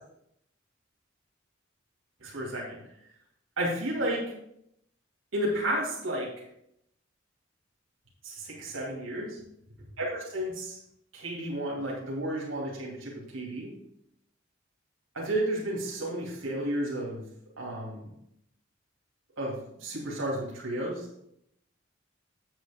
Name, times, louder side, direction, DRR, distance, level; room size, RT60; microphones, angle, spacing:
voice 1, 2.2-2.8 3.6-4.3 5.3-6.3 8.2-9.4 10.0-10.8 11.1-13.7 15.1-17.2 17.6-18.0 19.4-21.1, right 1 dB, 85° right, -4 dB, 2.7 m, -32 dB
9.0 x 7.8 x 3.6 m, 0.76 s
head